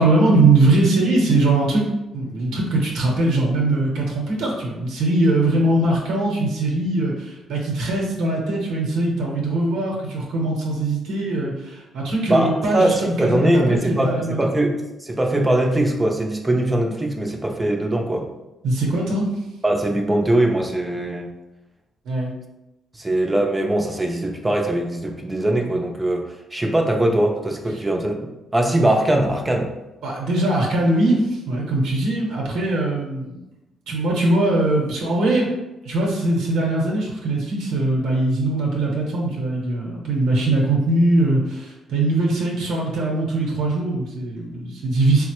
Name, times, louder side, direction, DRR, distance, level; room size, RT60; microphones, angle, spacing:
voice 1, 0.0-1.8 2.1-14.4 18.6-19.3 22.0-22.3 30.0-33.4 33.9-35.5 35.8-45.3, right 2 dB, 85° right, -2 dB, 0.8 m, -21 dB
voice 2, 12.3-18.3 19.6-21.3 22.9-29.7, right 1 dB, 15° right, 2 dB, 0.4 m, -21 dB
3.8 x 2.0 x 2.9 m, 0.98 s
cardioid pair, 90°, 0 cm